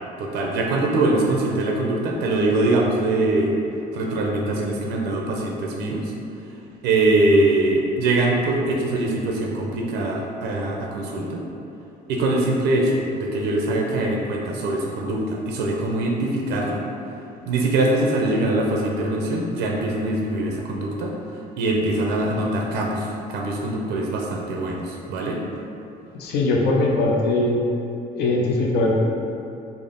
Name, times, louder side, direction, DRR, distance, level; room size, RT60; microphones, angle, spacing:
voice 1, 0.2-3.5 3.9-6.1 6.8-11.4 12.1-16.8 17.4-21.1 21.6-25.4, right 2 dB, 85° right, -1 dB, 0.5 m, -23 dB
voice 2, 26.2-27.6 28.1-28.9, left 2 dB, 75° left, -2 dB, 0.5 m, -20 dB
3.5 x 2.0 x 3.7 m, 2.8 s
cardioid pair, 110°, 17 cm